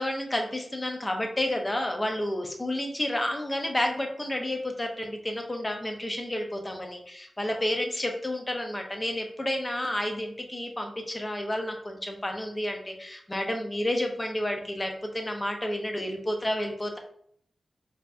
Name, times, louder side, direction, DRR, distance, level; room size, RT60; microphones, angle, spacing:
voice 1, 0.0-17.0, left 1 dB, 25° left, 3 dB, 0.7 m, -30 dB
4.3 x 2.8 x 2.5 m, 0.66 s
cardioid pair, 65°, 0 cm